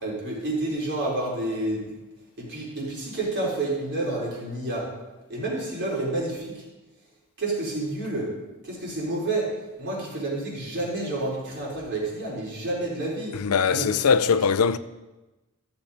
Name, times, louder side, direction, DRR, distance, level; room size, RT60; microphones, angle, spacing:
voice 1, 0.0-1.9 2.4-4.8 5.3-6.6 7.4-8.3 8.6-9.5 9.8-13.4 13.7-13.9, right 2 dB, 55° right, 4.4 m, -29 dB
voice 2, 13.4-14.8, left 6 dB, 90° left, 0.5 m, -21 dB
14.5 x 7.2 x 5.1 m
head